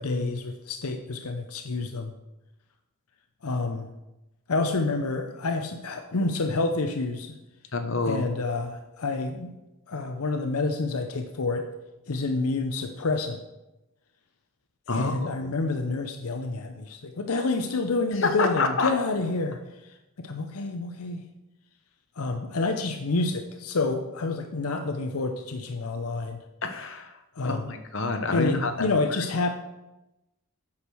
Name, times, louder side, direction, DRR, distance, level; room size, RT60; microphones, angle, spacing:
voice 1, 0.0-2.1 3.4-3.9 4.5-7.4 8.0-9.5 9.9-11.7 12.1-13.4 14.9-21.2 22.2-26.5 27.4-27.7 28.3-29.5, left 3 dB, 85° left, 6 dB, 0.7 m, -28 dB
voice 2, 7.7-8.2 14.9-15.5 18.2-18.9 26.6-27.1 27.4-28.9, left 3 dB, 60° left, 6 dB, 1.0 m, -27 dB
8.5 x 6.4 x 6.1 m, 0.98 s
head